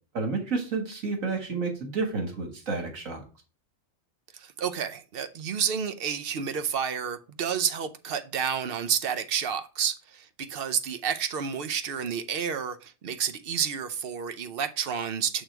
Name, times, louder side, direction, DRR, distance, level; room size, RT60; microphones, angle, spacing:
voice 1, 0.1-3.2, right 4 dB, 80° right, 1.9 m, -30 dB
voice 2, 4.3-15.4, right 7 dB, 55° right, 0.7 m, -30 dB
6.3 x 3.9 x 4.5 m
omnidirectional pair, 1.4 m